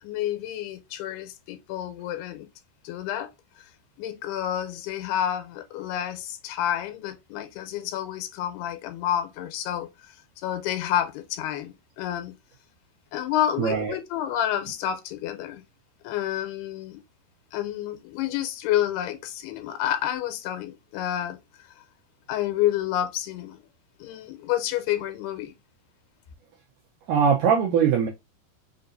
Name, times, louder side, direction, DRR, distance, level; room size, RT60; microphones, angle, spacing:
voice 1, 0.0-2.5 2.8-3.3 4.0-9.9 10.4-12.4 13.1-15.6 16.0-17.0 17.5-21.4 22.3-23.6 24.0-25.5, left 11 dB, 80° left, 2.7 m, -29 dB
voice 2, 13.6-14.0 27.1-28.1, right 7 dB, 80° right, 1.8 m, -21 dB
5.8 x 2.6 x 2.5 m
omnidirectional pair, 4.6 m